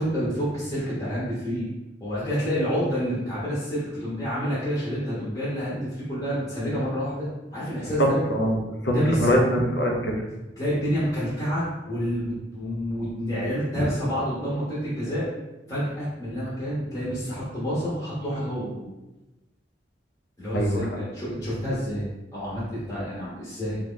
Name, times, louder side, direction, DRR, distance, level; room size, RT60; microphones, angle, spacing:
voice 1, 0.0-1.7 2.0-8.2 8.9-9.4 10.6-15.2 15.7-18.9 20.4-22.1 22.3-23.8, equal, 20° left, -10 dB, 0.9 m, -28 dB
voice 2, 8.0-8.6 8.8-10.1 13.7-13.9 20.5-20.9, equal, 70° left, 0 dB, 0.7 m, -23 dB
2.9 x 2.3 x 3.7 m, 1.0 s
head